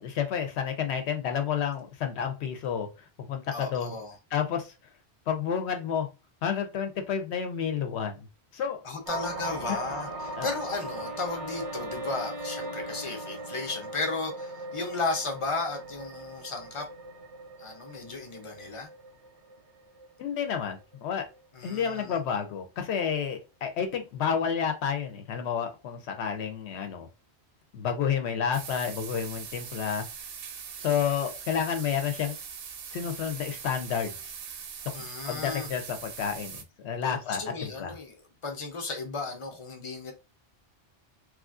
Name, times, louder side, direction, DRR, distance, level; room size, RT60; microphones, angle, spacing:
voice 1, 0.0-2.9 3.2-3.9 4.3-4.7 5.3-6.1 6.4-8.2 8.5-8.8 9.7-9.8 10.4-10.5 20.2-21.2 21.6-27.1 27.7-30.1 30.8-32.3 32.9-34.2 35.3-37.9, left 7 dB, 80° left, 0.9 m, -30 dB
voice 2, 3.5-4.2 8.8-16.9 17.6-18.9 21.5-22.2 34.9-35.7 37.0-40.1, left 3 dB, 35° left, 0.6 m, -34 dB
sound 1, 9.1-21.4 21.9-22.1, right 2 dB, 90° right, 1.1 m, -40 dB
Wind instrument woodwind instrument, 9.7-14.2, left 2 dB, 25° right, 0.4 m, -44 dB
sound 2, 28.5-36.6, right 7 dB, 65° right, 0.7 m, -41 dB
3.1 x 2.4 x 2.4 m
omnidirectional pair, 1.1 m